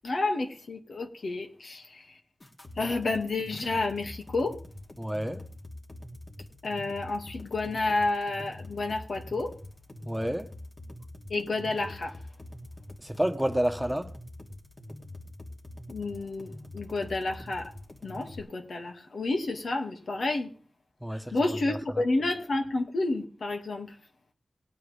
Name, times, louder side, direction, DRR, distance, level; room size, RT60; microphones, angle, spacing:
voice 1, 0.0-2.2 2.8-4.6 6.6-9.5 11.3-12.2 15.9-17.7 18.0-20.5 21.1-24.0, left 2 dB, 85° left, 2.2 m, -30 dB
sound 1, 2.4-18.4, left 1 dB, 45° left, 3.0 m, -45 dB
voice 2, 5.0-5.4 10.1-10.5 13.0-14.1 21.0-21.3 21.7-21.8, right 1 dB, 5° right, 1.3 m, -29 dB
19.5 x 9.5 x 3.5 m
cardioid pair, 50°, 0 cm